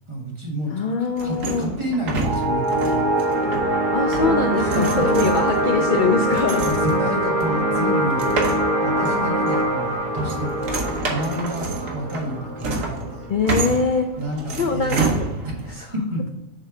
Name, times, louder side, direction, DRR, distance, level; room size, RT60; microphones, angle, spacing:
voice 1, 0.1-0.7 1.0-3.2 3.4-3.6 4.6-5.3 5.7-6.0 6.6-8.2 8.8-13.3 14.2-15.0 15.4-15.5 15.9-16.3, equal, 25° right, -2 dB, 1.5 m, -29 dB
voice 2, 0.7-1.7 3.9-6.7 13.3-14.1 14.6-15.3 15.7-15.9, left 4 dB, 60° left, 5 dB, 0.5 m, -23 dB
sound 1, 1.2-15.8, right 3 dB, 75° right, 1.4 m, -29 dB
sound 2, 2.2-13.3, right 1 dB, 40° right, 1.1 m, -23 dB
7.6 x 3.3 x 4.8 m, 0.89 s
omnidirectional pair, 1.4 m